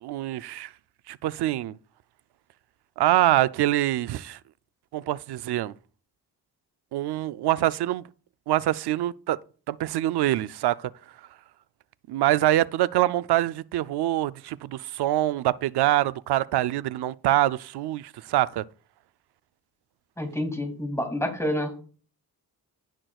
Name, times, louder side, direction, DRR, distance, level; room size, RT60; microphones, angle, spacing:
voice 1, 0.0-0.7 1.1-1.8 3.0-4.4 4.9-5.7 6.9-8.0 8.5-9.4 9.7-10.9 12.1-18.6, right 14 dB, 80° right, 0.5 m, -25 dB
voice 2, 20.2-21.8, left 1 dB, 5° left, 2.4 m, -28 dB
16.5 x 6.0 x 2.4 m
cardioid pair, 80°, 39 cm